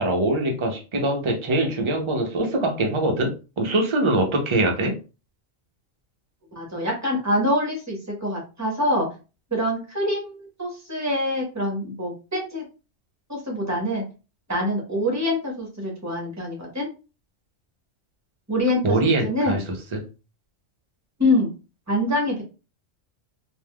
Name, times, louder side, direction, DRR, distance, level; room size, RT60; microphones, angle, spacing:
voice 1, 0.0-4.9 18.8-19.6 19.9-20.0, right 2 dB, 40° right, 2 dB, 0.4 m, -23 dB
voice 2, 6.5-9.1 9.5-12.6 13.3-14.0 14.5-16.9 18.5-19.6 21.2-21.5 21.9-22.4, left 1 dB, 15° right, -1 dB, 1.0 m, -25 dB
3.4 x 2.6 x 2.2 m, 0.32 s
omnidirectional pair, 1.3 m